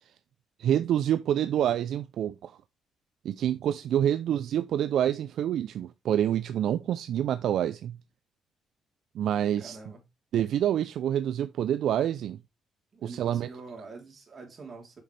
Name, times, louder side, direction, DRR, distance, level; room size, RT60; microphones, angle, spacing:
voice 1, 0.6-2.5 3.2-8.0 9.1-9.8 10.3-12.4 13.0-13.5, right 10 dB, 75° right, 0.4 m, -27 dB
voice 2, 9.6-10.0 12.9-15.0, right 4 dB, 45° right, 3.4 m, -45 dB
7.8 x 6.5 x 3.3 m
cardioid pair, 90°, 0 cm